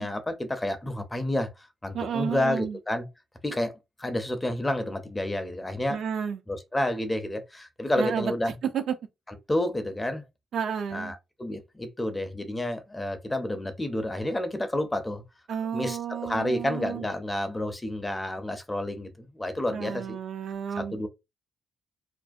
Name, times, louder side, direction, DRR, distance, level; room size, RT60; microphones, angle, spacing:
voice 1, 0.0-3.1 3.4-6.0 6.5-8.5 9.5-10.2 10.9-15.2 15.7-20.2 20.8-21.1, left 1 dB, 15° left, 0.5 m, -30 dB
voice 2, 1.9-2.8 5.9-6.4 8.0-8.3 8.7-8.9 10.5-11.1 15.5-17.1 19.7-21.1, right 7 dB, 65° right, 0.4 m, -31 dB
2.5 x 2.0 x 2.4 m
cardioid pair, 90°, 0 cm